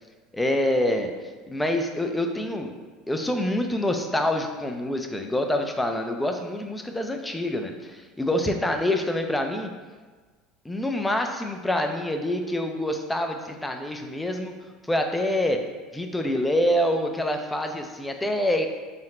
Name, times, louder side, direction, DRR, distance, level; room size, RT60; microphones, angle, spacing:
voice 1, 0.3-2.7 3.1-9.7 10.6-14.5 14.9-15.6 15.9-18.7, left 1 dB, 5° left, 4 dB, 0.3 m, -26 dB
4.0 x 2.1 x 4.2 m, 1.4 s
supercardioid pair, 140°, 0 cm